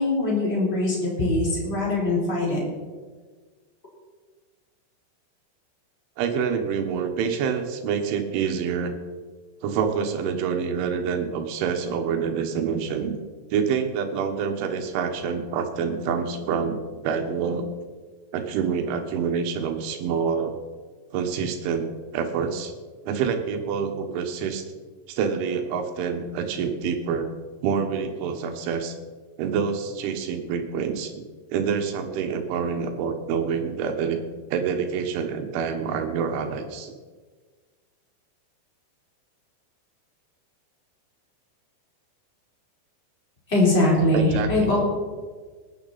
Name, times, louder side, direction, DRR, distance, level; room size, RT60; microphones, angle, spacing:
voice 1, 0.0-2.6 43.5-44.8, left 2 dB, 15° left, -4 dB, 3.6 m, -22 dB
voice 2, 6.2-9.0 9.6-13.2 13.5-16.8 17.0-17.7 18.3-20.5 21.1-21.9 22.1-22.7 23.1-24.7 25.1-27.3 27.6-29.0 29.4-31.1 31.5-34.2 34.5-36.9 44.1-44.7, right 6 dB, 75° right, 5 dB, 3.6 m, -27 dB
19.0 x 10.0 x 4.2 m, 1.4 s
omnidirectional pair, 5.6 m